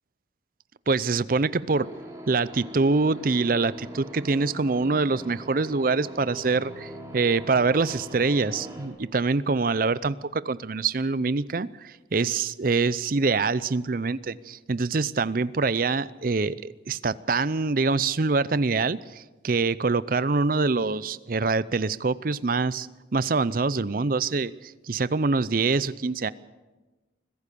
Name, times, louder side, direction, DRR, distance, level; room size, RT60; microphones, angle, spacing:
voice 1, 0.9-1.9 2.3-22.9 23.1-24.5 24.9-26.3, right 4 dB, 50° right, 18 dB, 0.6 m, -25 dB
sound 1, 1.7-8.9, equal, 20° right, 3.4 m, -42 dB
25.0 x 16.0 x 6.9 m, 1.2 s
head